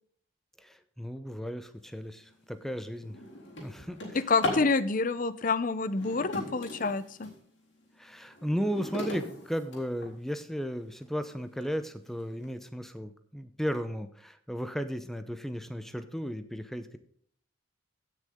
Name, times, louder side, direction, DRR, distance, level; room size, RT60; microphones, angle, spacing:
voice 1, 0.6-3.2 3.6-4.2 8.0-17.0, equal, ahead, 9 dB, 0.7 m, -35 dB
Drawer open or close, 2.1-2.3 2.8-4.7 5.8-7.4 7.9-10.4 11.0-11.1 11.6-11.7 12.1-12.4, left 1 dB, 60° left, 3.9 m, -38 dB
voice 2, 4.1-7.3, left 4 dB, 40° left, 14 dB, 0.6 m, -28 dB
16.5 x 6.5 x 3.7 m, 0.62 s
head